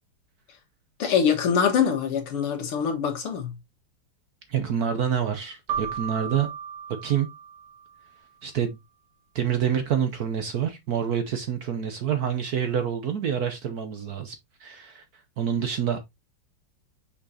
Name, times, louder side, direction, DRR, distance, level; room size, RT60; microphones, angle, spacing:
voice 1, 1.0-3.5, left 7 dB, 90° left, 2.5 m, -24 dB
voice 2, 4.5-6.5 7.0-7.3 8.4-8.8 9.3-15.0 15.4-16.0, right 8 dB, 65° right, 1.0 m, -27 dB
Keyboard (musical), 5.7-8.2, right 8 dB, 90° right, 2.6 m, -35 dB
6.1 x 5.8 x 2.7 m
omnidirectional pair, 2.4 m